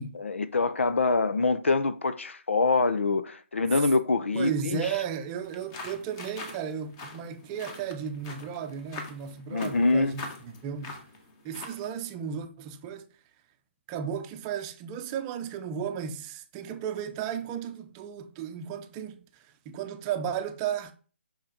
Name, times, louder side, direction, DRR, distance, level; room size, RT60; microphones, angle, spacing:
voice 1, 0.1-4.8 9.5-10.1, left 3 dB, 75° left, 0.8 m, -25 dB
voice 2, 4.3-11.0 11.4-13.1 13.9-20.9, right 8 dB, 20° right, 0.7 m, -34 dB
sound 1, 5.4-11.9, left 3 dB, 25° left, 1.5 m, -43 dB
5.8 x 5.7 x 5.1 m
hypercardioid pair, 155°, 7 cm